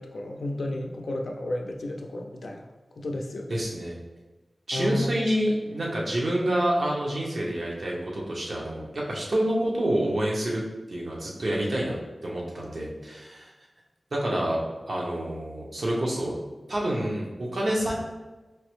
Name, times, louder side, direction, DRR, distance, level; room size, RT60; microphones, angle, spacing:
voice 1, 0.0-2.7 3.0-3.5 4.7-5.1, left 1 dB, 90° left, 2 dB, 0.4 m, -32 dB
voice 2, 3.5-4.0 4.7-10.6 10.9-13.5 14.1-16.4 16.7-17.9, right 1 dB, 70° right, -3 dB, 0.7 m, -28 dB
4.5 x 2.0 x 3.0 m, 1.2 s
wide cardioid pair, 90°, 0 cm